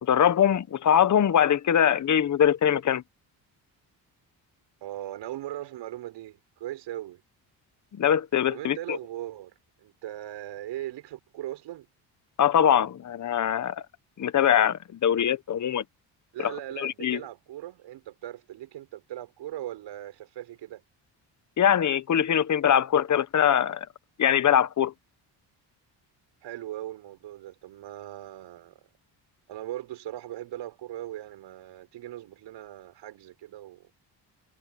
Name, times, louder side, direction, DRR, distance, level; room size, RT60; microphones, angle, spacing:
voice 1, 0.0-3.0 7.9-9.0 12.4-13.8 14.2-15.8 16.4-17.2 21.6-23.9 24.2-24.9, left 9 dB, 40° left, 1.2 m, -22 dB
voice 2, 4.8-7.2 8.5-11.9 16.3-20.8 26.4-28.8 29.5-33.9, right 13 dB, 80° right, 6.7 m, -39 dB
cardioid pair, 90°, 43 cm